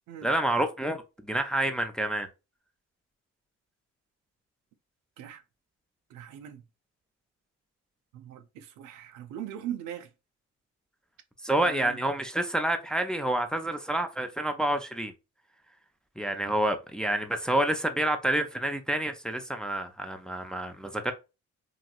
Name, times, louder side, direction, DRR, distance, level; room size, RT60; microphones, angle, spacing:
voice 1, 0.2-2.3 11.4-15.1 16.2-21.1, right 1 dB, 5° left, 0.4 m, -28 dB
voice 2, 6.1-6.6 8.1-10.1 11.6-12.0, right 10 dB, 90° right, 0.5 m, -40 dB
3.0 x 2.6 x 2.3 m
cardioid pair, 90°, 30 cm